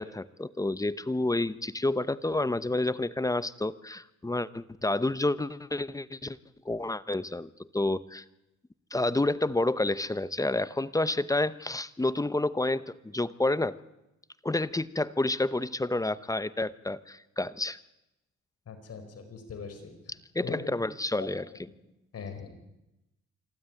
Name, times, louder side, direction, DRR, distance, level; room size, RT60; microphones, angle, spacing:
voice 1, 0.0-6.4 6.7-8.2 8.9-13.8 14.4-17.8 20.3-21.5, left 2 dB, 10° left, 16 dB, 0.8 m, -29 dB
voice 2, 18.7-19.9 20.4-20.8 21.2-21.6 22.1-22.5, left 5 dB, 55° left, 6 dB, 4.9 m, -41 dB
26.5 x 12.5 x 9.0 m, 0.93 s
cardioid pair, 90°, 30 cm